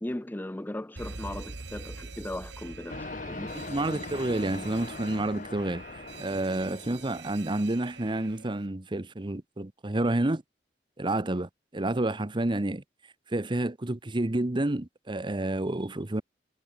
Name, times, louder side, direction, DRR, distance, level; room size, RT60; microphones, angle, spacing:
voice 1, 0.0-3.5, left 1 dB, 10° left, 0.5 m, -37 dB
Alarm, 1.0-8.7, right 4 dB, 70° right, 1.8 m, -45 dB
sound 1, 2.9-7.6, left 3 dB, 45° left, 1.9 m, -41 dB
voice 2, 3.5-5.8 6.2-10.4 11.0-12.8 13.3-16.2, right 1 dB, 25° right, 0.9 m, -29 dB
head